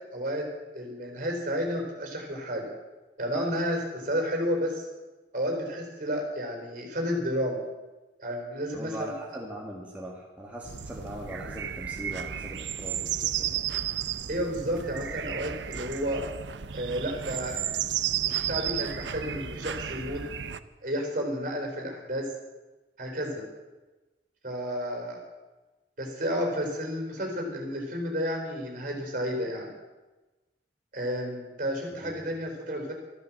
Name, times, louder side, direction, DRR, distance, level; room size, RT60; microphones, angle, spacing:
voice 1, 0.1-0.5 0.7-2.7 3.2-4.8 5.3-7.6 8.2-9.1 14.3-16.2 16.7-17.6 18.2-20.2 20.8-22.3 23.0-23.4 24.4-25.2 26.0-29.7 30.9-32.9, equal, 45° right, 2 dB, 4.3 m, -31 dB
voice 2, 8.7-13.6 32.0-32.1, right 1 dB, 10° right, -2 dB, 1.6 m, -40 dB
sound 1, 10.6-20.6, right 9 dB, 80° right, 0.7 m, -33 dB
13.5 x 12.0 x 7.5 m, 1.1 s
head